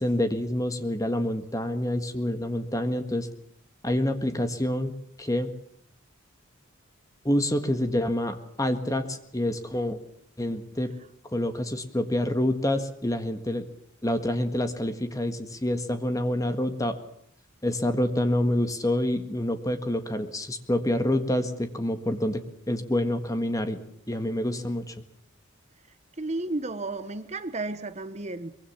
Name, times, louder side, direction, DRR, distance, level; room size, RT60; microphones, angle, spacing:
voice 1, 0.0-3.3 3.8-4.9 5.2-5.5 7.2-10.0 10.4-10.9 11.3-13.7 14.0-16.9 17.6-22.4 22.7-23.8 24.1-24.9, left 1 dB, 15° left, 8 dB, 1.6 m, -27 dB
voice 2, 26.2-28.6, right 2 dB, 30° right, 11 dB, 1.0 m, -33 dB
23.5 x 22.5 x 7.2 m, 0.68 s
head